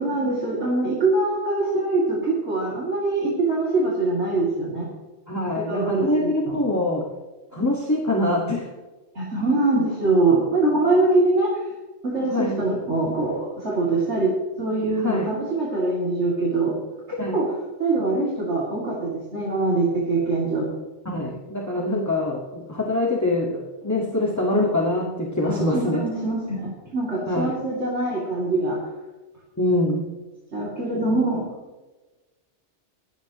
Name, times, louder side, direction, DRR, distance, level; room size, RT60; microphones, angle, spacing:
voice 1, 0.0-4.9 5.5-6.6 9.1-11.6 12.0-16.8 17.1-17.5 17.8-20.7 25.4-28.8 30.5-31.5, right 2 dB, 70° right, -6 dB, 3.1 m, -23 dB
voice 2, 5.3-7.1 7.5-8.7 12.3-12.6 15.0-15.3 17.2-17.5 21.0-26.0 27.3-27.5 29.6-30.1, left 1 dB, 15° left, -3 dB, 1.6 m, -24 dB
25.0 x 9.2 x 3.0 m, 1.2 s
omnidirectional pair, 1.2 m